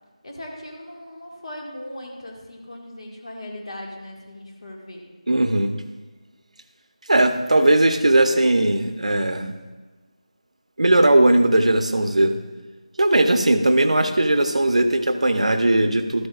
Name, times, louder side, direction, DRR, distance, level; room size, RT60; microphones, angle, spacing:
voice 1, 0.2-5.0, left 1 dB, 60° left, -1 dB, 1.8 m, -38 dB
voice 2, 5.3-5.7 7.1-9.5 10.8-12.4 13.0-16.3, right 1 dB, 75° right, 8 dB, 0.8 m, -18 dB
13.0 x 9.5 x 2.4 m, 1.3 s
figure-of-eight pair, 165°, 4 cm